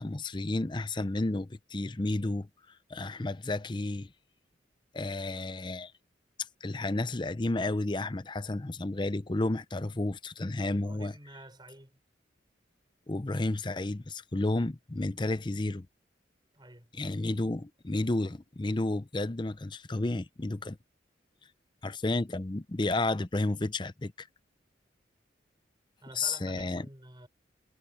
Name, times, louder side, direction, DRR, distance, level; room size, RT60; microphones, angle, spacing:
voice 1, 0.0-2.5 2.9-4.1 4.9-5.9 6.6-11.1 13.1-15.9 16.9-20.8 21.8-24.3 26.1-26.9, left 2 dB, 25° left, 0.6 m, -31 dB
voice 2, 10.7-12.0 16.5-16.9 26.0-27.3, right 1 dB, 25° right, 5.7 m, -50 dB
head